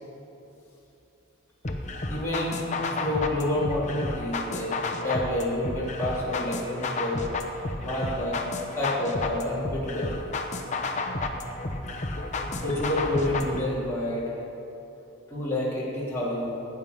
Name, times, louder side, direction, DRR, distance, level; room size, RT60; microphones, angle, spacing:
sound 1, 1.6-13.6, left 2 dB, 35° left, 0.9 m, -32 dB
voice 1, 2.1-2.7 3.0-4.8 5.0-7.2 7.8-8.4 8.8-10.1 12.6-14.2 15.3-16.5, left 1 dB, 10° left, -9 dB, 3.3 m, -28 dB
18.0 x 8.9 x 5.4 m, 2.9 s
head